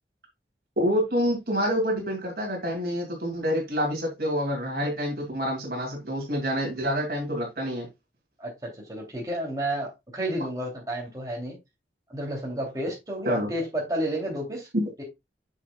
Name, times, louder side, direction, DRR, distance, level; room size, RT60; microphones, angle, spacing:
voice 1, 0.8-7.9 13.3-13.5 14.7-14.8, equal, 55° right, 2.4 m, -27 dB
voice 2, 8.4-11.6 12.1-14.7 15.0-15.1, right 1 dB, 20° right, 2.8 m, -31 dB
7.2 x 6.8 x 2.3 m
head